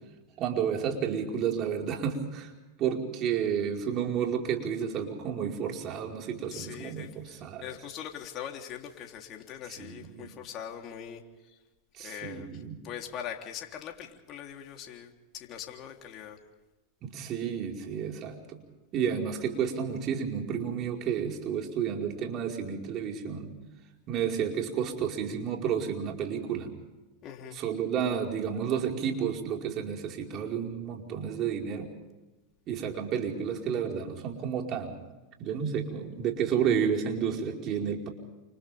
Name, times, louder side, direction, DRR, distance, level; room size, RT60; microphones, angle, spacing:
voice 1, 0.4-2.5 2.8-7.6 9.8-10.3 12.0-12.8 17.0-18.6 18.9-23.5 24.1-26.7 27.5-31.9 32.7-35.0 35.4-38.1, right 7 dB, 45° right, 1 dB, 4.9 m, -31 dB
voice 2, 6.5-11.2 11.5-11.6 12.0-16.4 27.2-27.6, left 9 dB, 45° left, 2 dB, 3.5 m, -42 dB
29.0 x 27.5 x 3.6 m, 1.1 s
hypercardioid pair, 100°, 0 cm